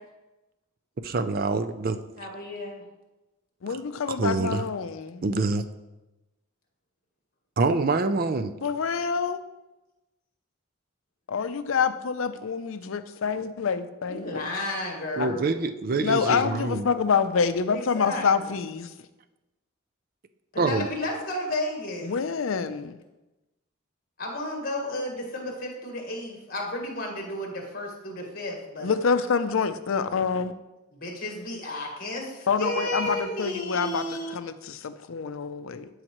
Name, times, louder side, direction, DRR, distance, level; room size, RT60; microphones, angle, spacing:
voice 1, 1.0-2.0 4.2-4.6 5.2-5.6 7.6-8.5 15.2-16.9 20.6-20.9, right 3 dB, 45° right, 10 dB, 0.4 m, -25 dB
voice 2, 2.2-2.8 14.1-15.5 17.7-18.2 20.5-22.1 24.2-29.0 30.9-34.4, left 1 dB, 45° left, 0 dB, 1.6 m, -33 dB
voice 3, 3.6-5.3 8.6-9.4 11.3-14.5 15.2-15.3 16.0-18.9 22.0-23.0 28.8-30.5 32.5-35.9, left 5 dB, 80° left, 11 dB, 0.5 m, -27 dB
12.0 x 4.9 x 3.1 m, 1.0 s
head